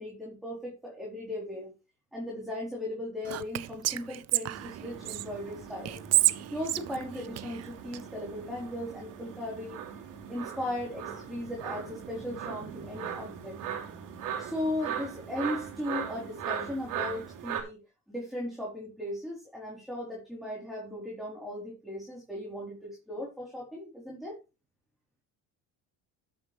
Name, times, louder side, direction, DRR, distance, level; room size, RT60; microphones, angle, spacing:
voice 1, 0.0-1.7 2.1-6.0 6.5-10.0 10.3-13.6 14.4-17.8 18.1-24.4, left 1 dB, ahead, -3 dB, 4.0 m, -37 dB
Whispering, 3.2-5.2 5.8-8.0, right 14 dB, 45° right, 0.6 m, -29 dB
sound 1, 4.5-17.6, right 8 dB, 65° right, 3.3 m, -39 dB
12.5 x 7.7 x 3.4 m, 0.29 s
supercardioid pair, 95°, 35 cm